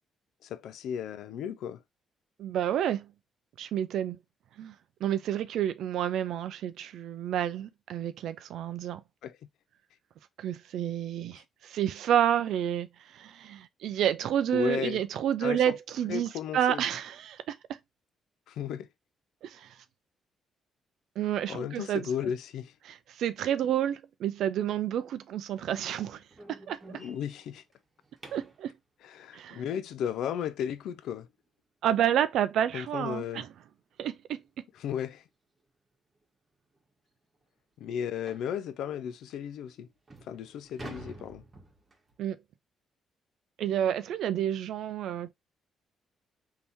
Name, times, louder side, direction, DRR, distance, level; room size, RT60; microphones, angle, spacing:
voice 1, 0.4-1.8 9.2-9.4 11.3-11.4 14.5-15.0 15.4-15.7 16.1-16.8 18.5-18.9 21.5-22.7 26.9-27.6 29.0-31.3 32.7-33.4 34.7-35.2 37.8-39.9 40.2-41.4, left 8 dB, 80° left, 0.3 m, -34 dB
voice 2, 2.4-3.1 3.6-4.2 4.6-4.7 5.0-9.0 10.4-17.8 19.4-19.8 21.2-22.0 22.8-26.2 26.5-26.8 28.3-28.7 29.3-29.6 31.8-33.5 34.0-34.4 42.2-42.4 43.6-45.3, right 10 dB, 80° right, 0.4 m, -30 dB
sound 1, 25.6-28.7 31.5-31.6 32.0-32.2 32.6-32.7 33.2-33.3 34.4-34.5 34.9-35.1 35.7-35.8 36.2-36.3 36.8-36.9 38.3-38.6 39.3-39.4 39.9-42.2, right 2 dB, 30° right, 1.4 m, -49 dB
3.5 x 2.8 x 4.1 m
cardioid pair, 90°, 0 cm